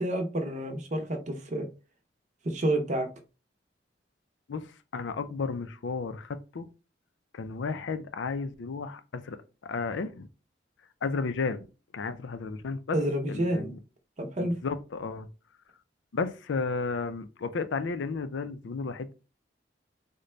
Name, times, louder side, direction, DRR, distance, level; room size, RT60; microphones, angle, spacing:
voice 1, 0.0-1.7 2.4-3.1 12.9-13.7 14.2-14.5, right 1 dB, 40° right, 0.6 m, -29 dB
voice 2, 4.9-6.7 7.3-9.4 9.6-10.3 11.0-11.6 11.9-13.0 13.3-13.8 14.4-15.3 16.1-19.1, left 4 dB, 90° left, 0.4 m, -33 dB
3.8 x 2.2 x 3.1 m
head